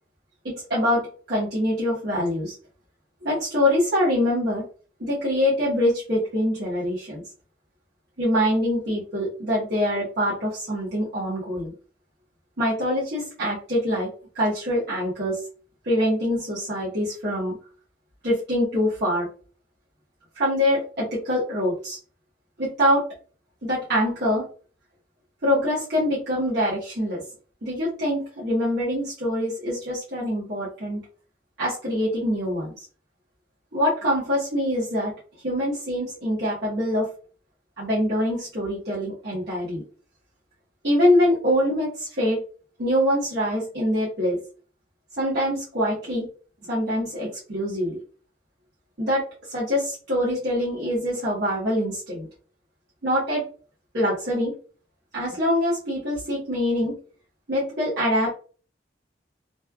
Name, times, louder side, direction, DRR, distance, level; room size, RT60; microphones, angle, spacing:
voice 1, 0.4-2.5 3.2-4.7 5.0-7.2 8.2-11.7 12.6-15.4 15.8-17.6 18.2-19.3 20.3-22.0 22.6-23.0 23.6-24.5 25.4-27.2 27.6-31.0 31.6-32.7 33.7-35.1 35.4-37.1 37.8-39.8 40.8-42.4 42.8-44.4 45.2-46.3 46.7-48.0 49.0-52.3 53.0-53.5 53.9-54.5 55.1-57.0 57.5-58.3, equal, 65° right, -9 dB, 1.1 m, -24 dB
3.2 x 2.4 x 2.3 m, 0.40 s
head